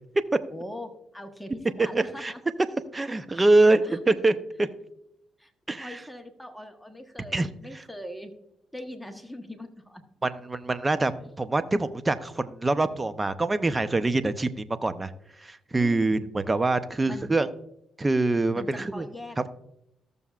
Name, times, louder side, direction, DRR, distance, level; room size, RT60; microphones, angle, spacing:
voice 1, 0.5-2.4 3.3-3.5 3.8-4.2 5.4-5.5 5.8-8.3 8.7-10.0 15.8-16.3 17.1-17.4 18.5-19.5, left 1 dB, ahead, 5 dB, 1.2 m, -41 dB
voice 2, 1.9-2.3 2.9-4.7 5.7-6.0 7.3-7.5 10.2-11.1 11.4-15.1 15.4-17.5 18.0-19.1, right 2 dB, 25° right, 12 dB, 0.7 m, -24 dB
15.0 x 6.8 x 2.4 m, 0.79 s
supercardioid pair, 70°, 0 cm